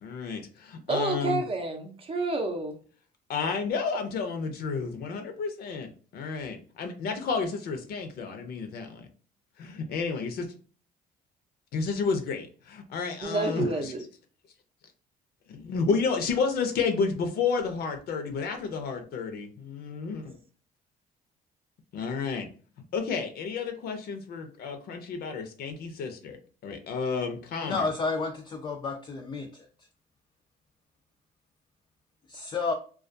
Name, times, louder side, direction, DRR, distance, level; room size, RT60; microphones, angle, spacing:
voice 1, 0.0-1.4 3.3-9.1 9.6-10.5 11.7-13.9 15.5-20.3 21.9-22.5 22.9-26.4 26.6-27.9, left 5 dB, 65° left, 0.6 m, -31 dB
voice 2, 0.9-2.8 13.2-14.0 20.2-20.3, right 3 dB, 35° right, 0.6 m, -29 dB
voice 3, 27.6-29.5 32.3-32.7, left 4 dB, 25° left, 0.3 m, -30 dB
2.3 x 2.3 x 2.5 m
cardioid pair, 110°, 17 cm